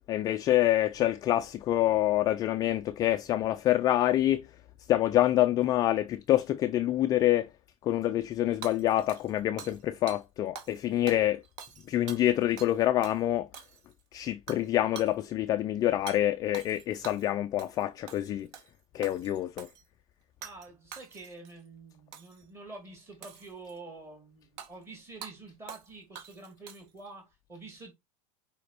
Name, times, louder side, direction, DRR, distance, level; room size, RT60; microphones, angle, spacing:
voice 1, 0.1-4.5 4.9-7.5 7.8-11.4 11.9-13.5 14.1-18.5 18.9-19.7, left 13 dB, 20° left, 0.3 m, -26 dB
Hammer / Shatter, 8.6-9.8 10.1-10.2 10.5-10.8 11.1-12.8 13.0-13.2 13.5-14.0 14.5-14.7 14.9-15.1 16.1-16.2 16.5-17.3 17.6-17.8 18.1-18.7 19.0-19.8 20.4-20.7 20.9-21.5 22.1-22.4 23.2-23.8 24.6-24.7 25.2-25.3 25.7-25.9 26.1-27.0, right 7 dB, 50° right, 1.4 m, -45 dB
voice 2, 20.4-27.9, right 3 dB, 15° right, 2.6 m, -47 dB
5.1 x 5.0 x 4.3 m
supercardioid pair, 170°, 19 cm